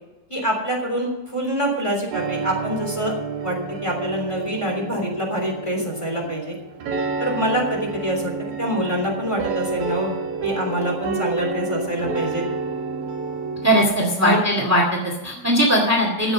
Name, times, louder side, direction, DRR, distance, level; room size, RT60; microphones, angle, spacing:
voice 1, 0.3-3.1 3.4-3.6 3.8-6.5 7.2-8.3 8.6-10.2 10.4-12.4 14.2-14.4, equal, 10° left, 1 dB, 3.0 m, -25 dB
sound 1, 2.1-13.8, right 4 dB, 75° right, 3.3 m, -30 dB
voice 2, 13.6-16.3, equal, 10° right, 1 dB, 0.9 m, -19 dB
14.0 x 7.9 x 6.9 m, 1.1 s
omnidirectional pair, 4.1 m